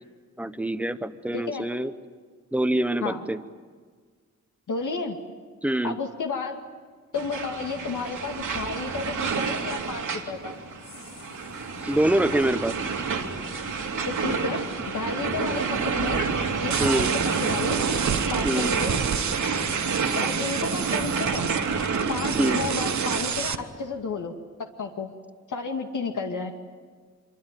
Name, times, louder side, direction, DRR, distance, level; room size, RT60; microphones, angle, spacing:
voice 1, 0.4-1.9 2.5-3.4 5.6-6.0 11.8-12.7 16.8-17.1 18.4-18.7 22.3-22.6, right 1 dB, 5° right, 11 dB, 1.0 m, -25 dB
voice 2, 1.3-1.6 3.0-3.2 4.7-5.2 5.8-6.6 7.1-10.5 14.0-16.2 16.6-17.1 17.4-17.8 18.3-19.0 20.2-21.5 22.1-24.3 24.6-25.1 25.5-26.5, left 4 dB, 75° left, 3 dB, 2.2 m, -32 dB
sound 1, 7.1-23.2, right 5 dB, 80° right, 2.7 m, -29 dB
sound 2, 9.1-24.2, left 3 dB, 45° left, 2.4 m, -44 dB
sound 3, 16.7-23.6, right 7 dB, 65° right, 1.2 m, -30 dB
26.0 x 24.0 x 9.2 m, 1.5 s
wide cardioid pair, 125°, 31 cm